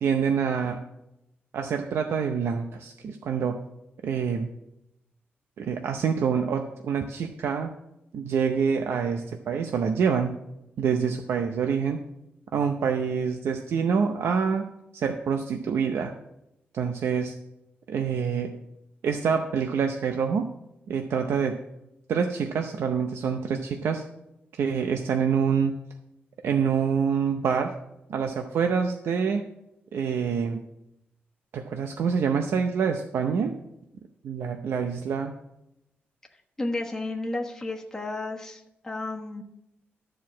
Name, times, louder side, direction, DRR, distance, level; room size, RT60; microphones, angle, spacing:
voice 1, 0.0-0.8 1.5-3.6 4.0-4.5 5.6-7.7 8.1-10.4 10.8-12.0 12.5-14.7 14.9-16.1 16.7-17.3 17.9-18.5 19.0-20.5 20.9-21.6 22.1-24.0 24.6-25.8 26.4-27.7 28.1-29.4 29.9-30.6 31.5-33.5 34.2-35.3, right 6 dB, 80° right, 5 dB, 0.7 m, -26 dB
voice 2, 36.6-39.4, left 2 dB, 10° left, 0 dB, 1.2 m, -32 dB
12.5 x 4.7 x 7.3 m, 0.87 s
wide cardioid pair, 160°, 4 cm